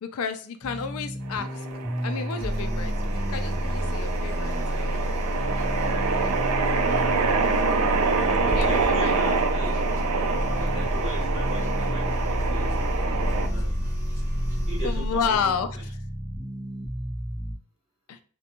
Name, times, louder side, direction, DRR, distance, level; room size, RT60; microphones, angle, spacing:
voice 1, 0.0-1.7 2.0-5.0 8.4-9.6 14.8-15.9 18.1-18.2, left 6 dB, 80° left, 9 dB, 0.4 m, -31 dB
sound 1, 0.6-17.5, equal, 10° right, 0.6 m, -35 dB
sound 2, 1.3-13.5, right 4 dB, 85° right, 0.4 m, -27 dB
sound 3, 2.4-15.4, equal, 45° right, 1.0 m, -29 dB
voice 2, 8.6-9.8 10.6-12.2 12.5-12.8 13.3-14.2 14.6-15.8, right 1 dB, 30° right, -4 dB, 1.4 m, -40 dB
2.6 x 2.2 x 2.8 m, 0.42 s
head